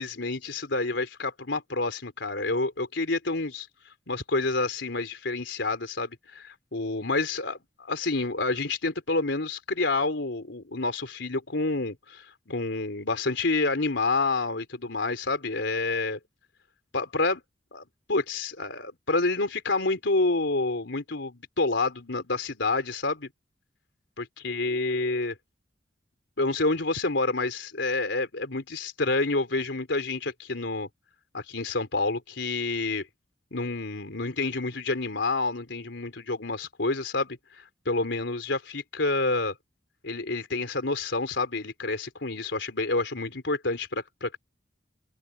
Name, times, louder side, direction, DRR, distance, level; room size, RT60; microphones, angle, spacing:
voice 1, 0.0-16.2 16.9-17.4 17.7-17.8 18.1-23.3 24.2-25.3 26.4-30.9 31.3-33.1 33.5-39.5 40.0-44.4, left 3 dB, 80° left, 3.6 m, -28 dB
open air
head